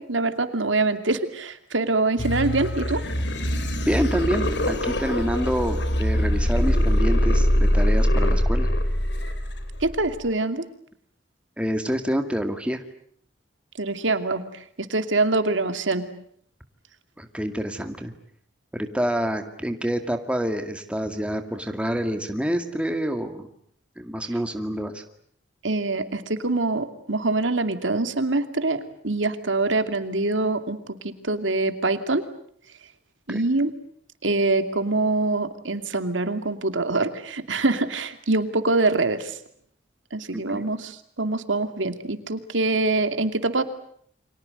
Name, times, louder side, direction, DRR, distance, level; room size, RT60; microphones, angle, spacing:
voice 1, 0.0-3.0 9.8-10.6 13.8-14.5 14.8-16.1 25.6-32.2 33.3-33.7 34.2-39.4 40.1-43.6, right 2 dB, 85° right, 9 dB, 2.5 m, -24 dB
sound 1, 2.2-10.2, equal, 65° left, 3.4 m, -23 dB
voice 2, 3.9-8.7 11.6-12.8 17.2-18.1 18.7-23.5 24.0-25.0 33.3-33.4 40.3-40.6, equal, 5° right, 6 dB, 2.1 m, -27 dB
29.5 x 25.0 x 7.8 m, 0.63 s
head